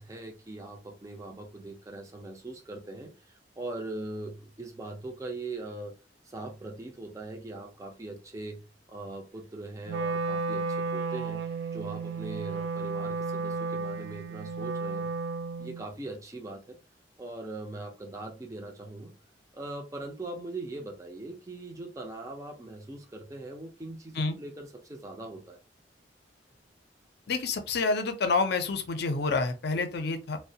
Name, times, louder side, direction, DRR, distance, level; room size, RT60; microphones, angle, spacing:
voice 1, 0.0-5.9 6.2-15.1 15.6-16.8 17.2-19.1 19.5-25.6, right 2 dB, 20° right, 0.5 m, -41 dB
Wind instrument woodwind instrument, 9.9-15.9, right 4 dB, 75° right, 0.3 m, -33 dB
voice 2, 27.3-30.4, left 3 dB, 65° left, 0.5 m, -28 dB
2.3 x 2.1 x 2.7 m
head